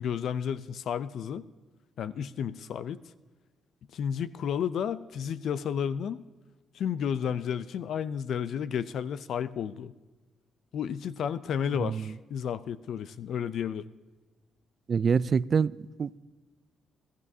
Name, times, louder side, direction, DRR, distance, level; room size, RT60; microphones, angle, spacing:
voice 1, 0.0-1.5 2.0-3.0 3.9-6.2 6.7-9.9 10.7-13.9, left 8 dB, 70° left, 0.5 m, -32 dB
voice 2, 11.7-12.1 14.9-16.2, right 6 dB, 45° right, 0.3 m, -26 dB
21.5 x 14.0 x 2.7 m
cardioid pair, 90°, 0 cm